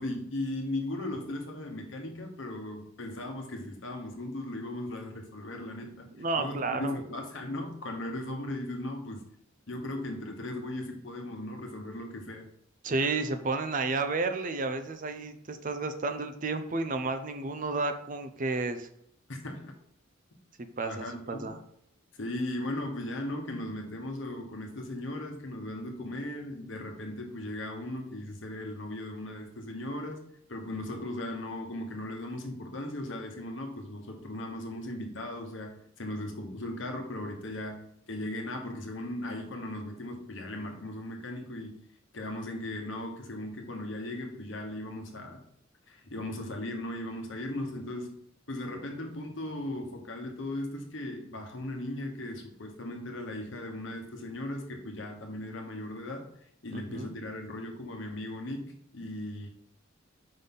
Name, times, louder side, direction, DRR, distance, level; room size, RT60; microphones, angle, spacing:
voice 1, 0.0-6.1 6.4-9.3 9.7-12.5 19.3-19.7 20.8-21.6 22.1-30.2 30.5-41.9 42.1-45.4 45.9-48.2 48.5-56.3 56.6-59.5, left 1 dB, 65° left, 3 dB, 1.2 m, -37 dB
voice 2, 6.2-7.0 12.8-18.9 20.6-21.6 56.7-57.1, right 3 dB, 40° right, 8 dB, 0.5 m, -31 dB
5.4 x 3.9 x 5.5 m, 0.71 s
head